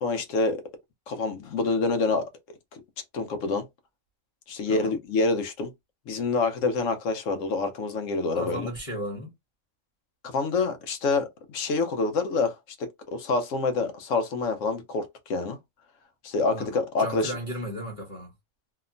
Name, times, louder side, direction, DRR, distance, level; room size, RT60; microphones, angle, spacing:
voice 1, 0.0-0.6 1.1-2.3 3.1-3.7 4.5-5.7 6.1-8.7 10.3-15.6 16.2-17.3, left 3 dB, 85° left, 1.1 m, -27 dB
voice 2, 8.3-9.3 16.5-16.7 17.0-18.3, equal, 30° left, 0.9 m, -35 dB
2.9 x 2.1 x 2.5 m
omnidirectional pair, 1.3 m